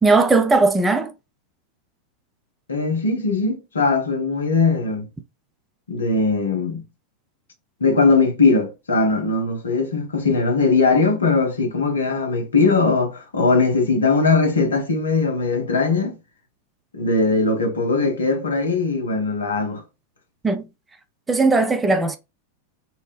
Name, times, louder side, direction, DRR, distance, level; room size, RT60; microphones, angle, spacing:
voice 1, 0.0-1.1 20.4-20.6 21.3-22.2, right 3 dB, 15° right, 0.4 m, -17 dB
voice 2, 2.7-5.1 5.9-6.8 7.8-16.1 16.9-19.8, left 3 dB, 70° left, 0.7 m, -20 dB
2.7 x 2.0 x 3.2 m
figure-of-eight pair, 90°, 0 cm